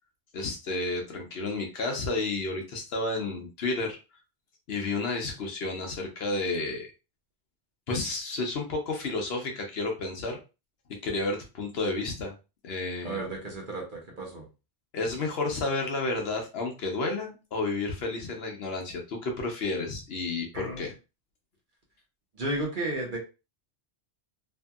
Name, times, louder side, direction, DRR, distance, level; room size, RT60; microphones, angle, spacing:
voice 1, 0.3-4.0 4.7-6.9 7.9-10.4 11.0-12.3 12.6-13.2 14.9-20.9, left 3 dB, 65° left, 2 dB, 0.9 m, -31 dB
voice 2, 13.0-14.4 20.5-20.9 22.4-23.2, right 2 dB, 50° right, -1 dB, 1.0 m, -33 dB
2.9 x 2.6 x 2.3 m, 0.29 s
omnidirectional pair, 1.2 m